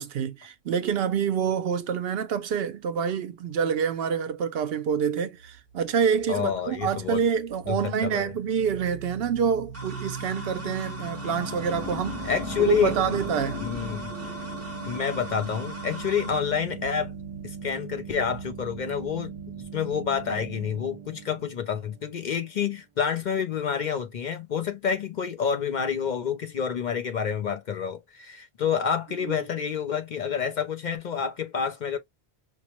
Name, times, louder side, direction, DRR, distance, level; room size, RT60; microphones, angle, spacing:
voice 1, 0.0-12.3 12.6-13.7 29.3-29.4, right 7 dB, 70° right, 0.8 m, -27 dB
sound 1, 5.4-19.6, left 2 dB, 85° left, 1.3 m, -41 dB
voice 2, 6.3-7.2 7.7-8.3 12.2-13.2 13.6-14.1 14.9-17.1 17.4-32.0, left 7 dB, 55° left, 0.6 m, -28 dB
sound 2, 9.7-16.4, equal, 15° right, 1.0 m, -41 dB
sound 3, 11.1-22.5, right 7 dB, 50° right, 0.4 m, -40 dB
4.6 x 2.0 x 2.8 m
omnidirectional pair, 1.1 m